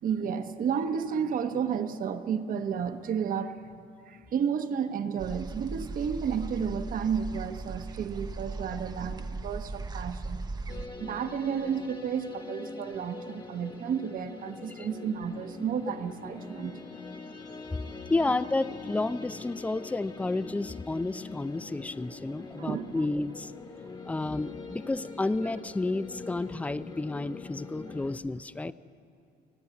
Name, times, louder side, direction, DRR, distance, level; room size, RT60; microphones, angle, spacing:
voice 1, 0.0-3.6 4.1-10.4 11.0-16.8 17.8-17.9 22.6-23.0, right 7 dB, 55° right, 8 dB, 1.2 m, -32 dB
sound 1, 5.2-10.9, right 3 dB, 25° right, 0.7 m, -38 dB
sound 2, 10.7-28.2, left 4 dB, 30° left, 1.6 m, -43 dB
voice 2, 18.1-23.5 24.0-28.7, left 2 dB, 10° left, 15 dB, 0.4 m, -31 dB
28.5 x 9.7 x 9.5 m, 2.4 s
cardioid pair, 110°, 17 cm